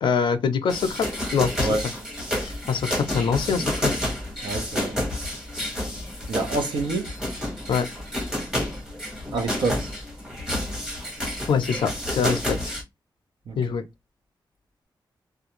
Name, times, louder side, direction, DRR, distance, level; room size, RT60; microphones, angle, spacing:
voice 1, 0.0-1.1 1.3-1.7 2.4-3.9 7.7-7.9 11.5-12.7 13.6-13.8, left 6 dB, 80° left, 0.4 m, -24 dB
sound 1, 0.7-12.8, left 1 dB, 10° right, 1.0 m, -30 dB
voice 2, 4.4-4.9 6.3-7.1 9.3-9.9 13.5-13.6, right 3 dB, 70° right, 0.8 m, -27 dB
2.4 x 2.2 x 2.8 m
wide cardioid pair, 145°, 8 cm